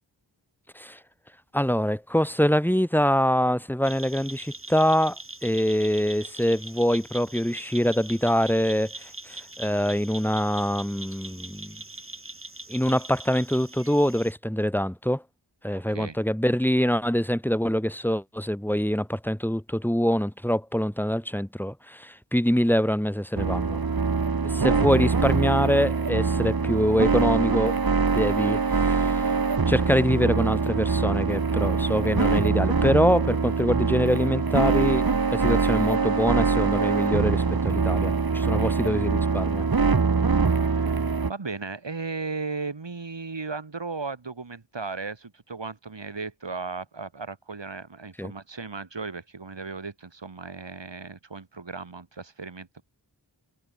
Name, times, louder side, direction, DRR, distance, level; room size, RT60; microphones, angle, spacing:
voice 1, 1.5-5.2 5.4-11.8 12.7-15.2 15.6-23.8 24.4-27.8 28.1-29.2 29.7-35.1 35.3-39.6 48.2-48.3, equal, 5° left, 3.9 m, -24 dB
sound 1, 3.8-14.3, right 2 dB, 30° right, 6.9 m, -42 dB
sound 2, 23.4-41.3, right 4 dB, 55° right, 1.7 m, -23 dB
voice 2, 24.6-25.1 38.6-39.1 40.3-52.8, right 4 dB, 80° right, 6.3 m, -36 dB
wide cardioid pair, 55°, 43 cm